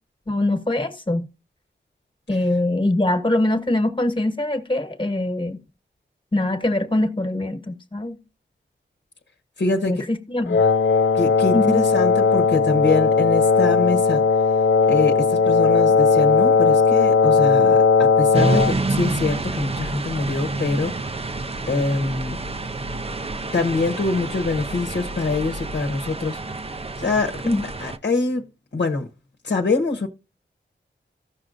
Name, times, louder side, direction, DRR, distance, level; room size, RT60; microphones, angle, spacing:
voice 1, 0.3-1.3 2.3-5.6 6.3-8.2 9.8-10.6 11.5-11.9 27.4-27.6, left 1 dB, 25° left, 1.4 m, -23 dB
voice 2, 9.6-10.0 11.1-14.2 14.9-21.2 21.7-22.4 23.5-26.4 27.0-27.4 27.8-28.4 28.7-29.1 29.4-30.1, left 3 dB, 60° left, 1.1 m, -24 dB
Wind instrument woodwind instrument, 10.5-18.8, left 4 dB, 85° left, 0.5 m, -17 dB
sound 1, 18.3-28.0, right 2 dB, 30° right, 0.6 m, -28 dB
16.0 x 6.2 x 2.6 m
wide cardioid pair, 100°, 20 cm